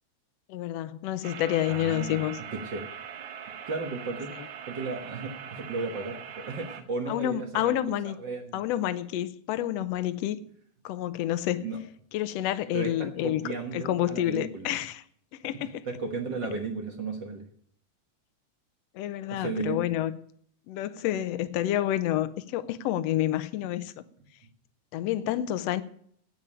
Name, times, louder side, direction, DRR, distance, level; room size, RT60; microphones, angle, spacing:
voice 1, 0.5-2.4 7.1-8.2 8.5-10.4 10.8-11.6 12.1-13.4 13.7-15.0 15.4-15.8 18.9-20.2 20.7-24.0 24.9-25.8, left 12 dB, 75° left, 13 dB, 1.6 m, -29 dB
sound 1, 1.2-6.8, right 8 dB, 70° right, 2.6 m, -42 dB
voice 2, 1.7-2.8 3.7-4.3 4.7-7.7 8.0-8.6 11.6-11.8 12.7-14.8 15.8-17.4 19.3-19.8, right 3 dB, 50° right, 4 dB, 1.4 m, -34 dB
9.2 x 8.8 x 9.7 m, 0.63 s
omnidirectional pair, 3.6 m